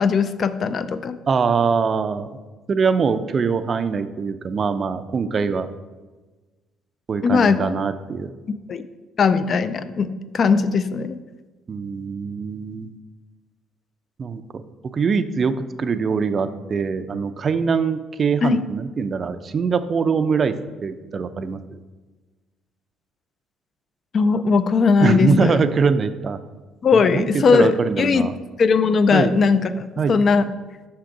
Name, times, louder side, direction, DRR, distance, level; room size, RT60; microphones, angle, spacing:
voice 1, 0.0-1.1 7.2-7.7 8.7-8.8 9.2-11.2 18.4-18.6 24.1-25.6 26.8-28.2 28.6-30.5, left 5 dB, 45° left, 12 dB, 0.3 m, -19 dB
voice 2, 1.3-2.3 2.7-5.7 7.1-8.3 11.7-12.9 14.2-20.6 20.8-21.8 25.0-26.4 26.9-27.3 27.5-28.3 29.1-29.3 30.0-30.2, right 5 dB, 40° right, 10 dB, 0.4 m, -23 dB
5.8 x 3.8 x 4.7 m, 1.2 s
cardioid pair, 95°, 0 cm